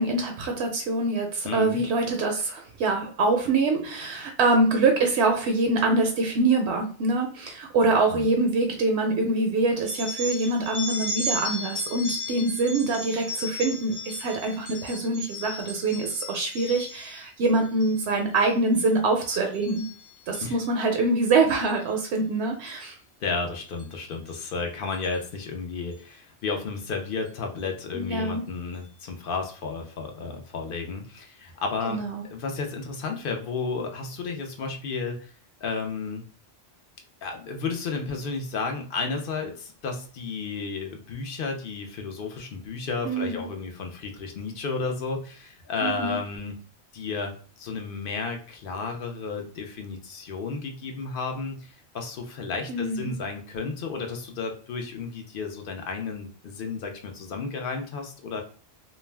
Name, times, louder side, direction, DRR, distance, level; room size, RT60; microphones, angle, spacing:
voice 1, 0.0-19.9 20.3-23.0 27.9-28.4 31.9-32.2 43.0-43.4 45.8-46.2 52.7-53.1, right 3 dB, 80° right, 3 dB, 0.8 m, -24 dB
voice 2, 1.4-1.8 8.1-8.2 20.4-20.6 23.2-32.0 32.3-35.3 35.6-36.2 37.2-46.6 46.9-58.4, left 4 dB, 60° left, 3 dB, 0.7 m, -32 dB
sound 1, 9.9-17.2 17.6-18.0 18.3-18.8 19.2-20.5 21.5-21.7 22.7-22.8 23.8-23.9 24.3-24.4 24.9-25.2, left 1 dB, 15° right, 0.5 m, -36 dB
2.3 x 2.1 x 3.3 m, 0.43 s
omnidirectional pair, 1.1 m